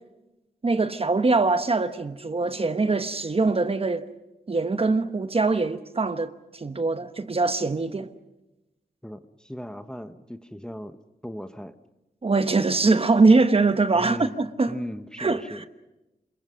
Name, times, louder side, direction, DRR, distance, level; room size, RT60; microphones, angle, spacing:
voice 1, 0.6-4.1 4.5-8.1 12.2-14.7 15.2-15.6, right 3 dB, 35° right, 1.1 m, -23 dB
voice 2, 9.0-11.0 11.2-11.7 13.9-14.3 14.7-15.7, equal, 5° left, 1.0 m, -37 dB
28.0 x 21.5 x 6.4 m
wide cardioid pair, 95°, 16 cm